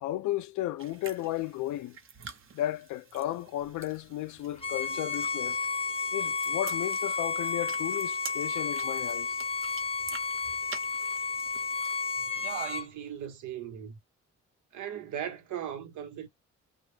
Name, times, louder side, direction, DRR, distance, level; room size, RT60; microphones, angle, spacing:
voice 1, 0.0-2.0 2.5-5.6 6.1-9.4, left 14 dB, 75° left, 0.5 m, -34 dB
sound 1, 0.8-12.1, right 6 dB, 45° right, 0.9 m, -48 dB
Bowed string instrument, 4.6-12.9, left 4 dB, 20° left, 0.6 m, -32 dB
voice 2, 12.4-14.0 14.7-16.3, right 9 dB, 75° right, 1.0 m, -38 dB
2.3 x 2.0 x 3.2 m
cardioid pair, 90°, 30 cm